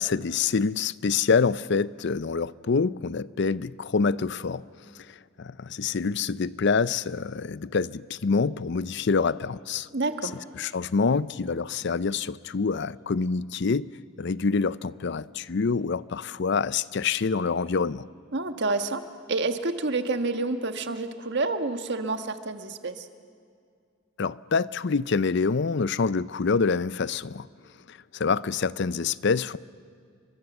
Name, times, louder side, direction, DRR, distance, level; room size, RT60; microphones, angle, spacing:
voice 1, 0.0-4.6 5.4-9.9 10.5-13.9 14.2-18.1 24.2-27.5 27.9-29.6, left 5 dB, 60° left, 0.5 m, -26 dB
voice 2, 9.9-10.3 18.3-19.0 19.3-23.1, right 3 dB, 60° right, 1.4 m, -28 dB
30.0 x 23.0 x 7.2 m
head